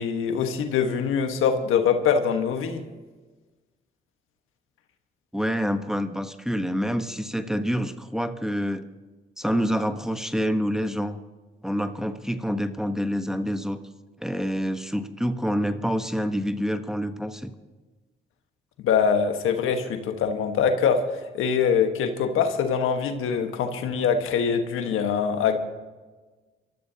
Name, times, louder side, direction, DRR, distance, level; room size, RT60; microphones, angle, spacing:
voice 1, 0.0-2.8 18.8-21.0 21.3-25.6, left 6 dB, 80° left, 6 dB, 1.4 m, -23 dB
voice 2, 5.3-8.8 9.4-11.2 11.6-13.8 14.2-17.5, equal, ahead, 7 dB, 1.1 m, -27 dB
24.5 x 13.5 x 2.8 m, 1.3 s
supercardioid pair, 60°, 21 cm